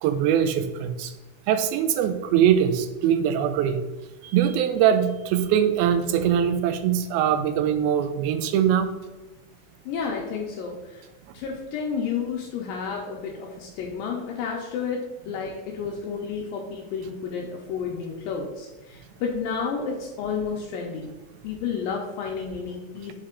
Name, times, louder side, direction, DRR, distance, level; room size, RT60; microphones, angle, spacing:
voice 1, 0.0-1.1 1.5-3.8 4.2-8.9, right 9 dB, 85° right, 9 dB, 2.4 m, -22 dB
voice 2, 9.9-11.1 11.3-21.1 21.4-23.1, left 6 dB, 80° left, -1 dB, 2.3 m, -31 dB
6.5 x 4.3 x 3.6 m, 1.1 s
omnidirectional pair, 4.2 m